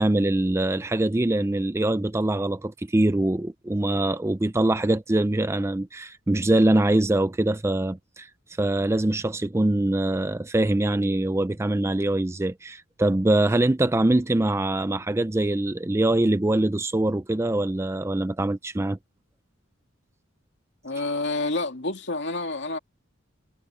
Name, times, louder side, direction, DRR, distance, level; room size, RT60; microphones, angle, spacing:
voice 1, 0.0-8.3 8.6-19.0, right 1 dB, 15° right, 0.4 m, -23 dB
voice 2, 20.8-22.8, left 2 dB, 60° left, 2.8 m, -28 dB
head